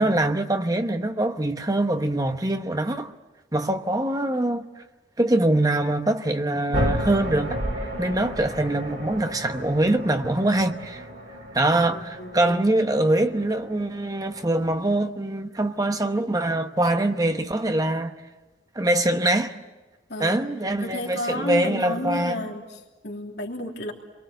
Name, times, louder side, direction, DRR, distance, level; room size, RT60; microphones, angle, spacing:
voice 1, 0.0-3.1 3.5-4.7 5.2-11.1 11.5-18.1 18.7-19.6 20.2-22.4, right 1 dB, 20° right, 1.0 m, -23 dB
sound 1, 6.7-14.7, equal, 60° right, 6.3 m, -33 dB
voice 2, 11.9-12.7 20.1-20.4 20.8-23.9, left 1 dB, 65° left, 3.2 m, -32 dB
30.0 x 23.0 x 7.9 m
head